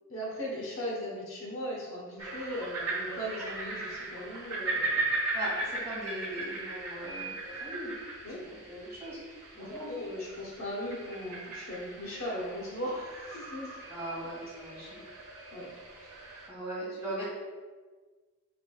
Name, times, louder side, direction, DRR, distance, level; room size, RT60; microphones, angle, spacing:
voice 1, 0.1-5.1 8.2-8.4 9.6-13.8 14.2-14.3 15.5-15.7, equal, 65° left, -4 dB, 1.0 m, -38 dB
sound 1, 2.2-16.5, right 2 dB, 85° right, 0.9 m, -38 dB
voice 2, 5.3-7.9 8.4-9.2 9.5-9.9 13.9-15.0 16.0-16.1 16.5-17.2, right 1 dB, 10° right, -9 dB, 1.5 m, -39 dB
4.7 x 3.6 x 2.3 m, 1.4 s
head